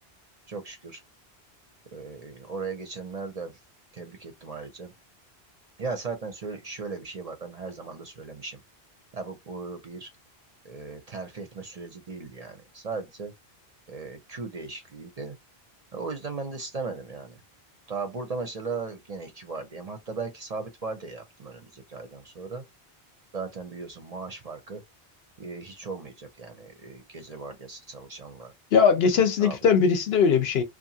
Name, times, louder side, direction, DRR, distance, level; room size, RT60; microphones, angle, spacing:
voice 1, 0.5-1.0 1.9-3.6 3.9-4.9 5.8-8.6 9.1-10.1 10.6-13.3 13.9-15.4 15.9-17.4 17.9-22.6 23.3-24.8 25.4-28.5 29.2-29.6, right 4 dB, 45° right, 0.6 m, -37 dB
voice 2, 28.7-30.6, left 6 dB, 70° left, 0.9 m, -20 dB
2.8 x 2.4 x 2.7 m
omnidirectional pair, 1.1 m